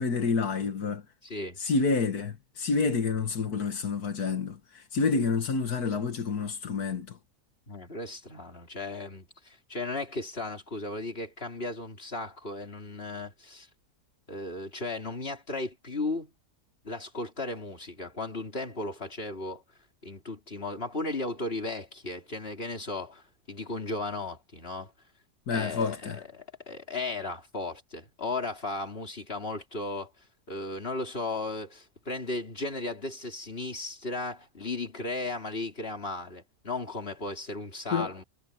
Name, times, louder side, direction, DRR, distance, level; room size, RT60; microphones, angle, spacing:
voice 1, 0.0-1.0 1.6-7.2 25.5-26.2 37.9-38.1, left 4 dB, 85° left, 2.1 m, -28 dB
voice 2, 1.2-1.6 7.7-13.7 14.3-16.3 16.8-19.6 20.0-24.9 25.5-30.1 30.5-38.2, left 2 dB, 40° left, 4.3 m, -35 dB
omnidirectional pair, 1.6 m